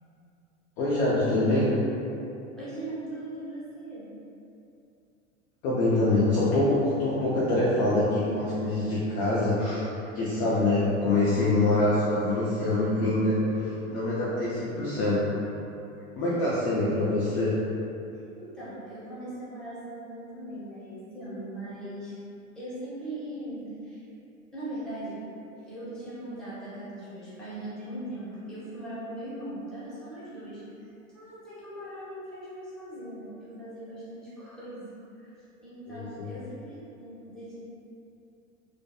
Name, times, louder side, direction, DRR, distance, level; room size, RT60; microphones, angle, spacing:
voice 1, 0.8-1.7 5.6-9.8 10.1-15.3 16.2-17.6 35.9-36.3, left 2 dB, 25° left, -8 dB, 0.3 m, -25 dB
voice 2, 2.6-4.1 16.2-17.0 18.3-22.1 22.5-24.0 24.5-25.3 25.6-30.9 31.1-34.8 35.2-37.6, right 1 dB, ahead, -11 dB, 0.7 m, -40 dB
2.3 x 2.1 x 2.8 m, 2.7 s
figure-of-eight pair, 85°, 40 cm